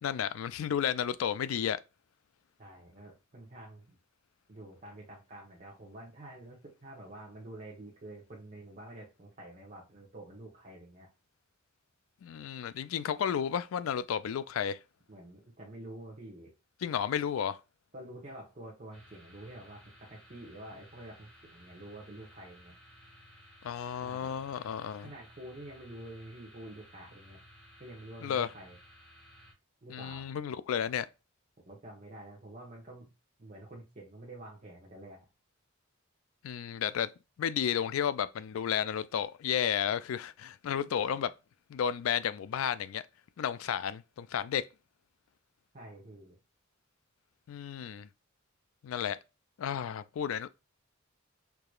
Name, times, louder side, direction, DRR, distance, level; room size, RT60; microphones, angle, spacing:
voice 1, 0.0-1.8 12.2-14.8 16.8-17.6 23.6-25.1 28.2-28.5 29.9-31.1 36.4-37.1 37.4-41.3 41.7-43.0 43.4-44.6 47.5-48.1 48.8-49.2 49.6-50.5, left 8 dB, 85° left, 0.3 m, -32 dB
voice 2, 2.6-3.9 4.5-11.1 15.1-16.5 17.9-22.8 24.0-24.3 25.0-27.4 27.8-28.8 29.8-30.3 31.7-33.1 33.4-35.2 45.7-46.4, right 1 dB, 40° right, 1.0 m, -48 dB
sound 1, 18.9-29.5, equal, 5° left, 1.3 m, -57 dB
4.7 x 2.9 x 2.3 m
head